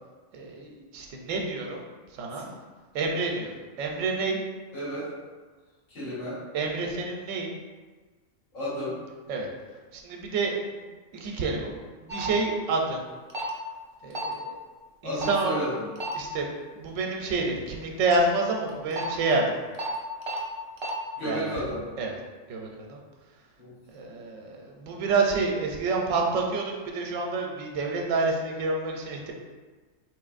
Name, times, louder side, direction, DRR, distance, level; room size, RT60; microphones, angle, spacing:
voice 1, 0.3-1.8 2.1-2.5 2.9-3.5 3.8-4.4 6.5-7.5 9.3-9.5 9.9-10.8 11.1-13.1 14.0-14.5 15.0-15.6 16.1-19.6 21.2-21.5 22.0-22.1 22.5-23.0 23.9-29.3, right 3 dB, 90° right, 0 dB, 1.0 m, -28 dB
voice 2, 4.7-5.1 5.9-6.4 8.5-9.0 15.0-15.9 21.2-21.9 23.6-23.7, equal, 85° left, -11 dB, 2.1 m, -32 dB
sound 1, 12.1-12.3 13.3-13.5 14.1-14.3 15.2-15.4 16.0-16.1 18.7-19.0 19.8-19.9 20.2-20.4 20.8-20.9, right 2 dB, 45° right, 0.3 m, -32 dB
4.0 x 3.1 x 2.4 m, 1.4 s
omnidirectional pair, 1.3 m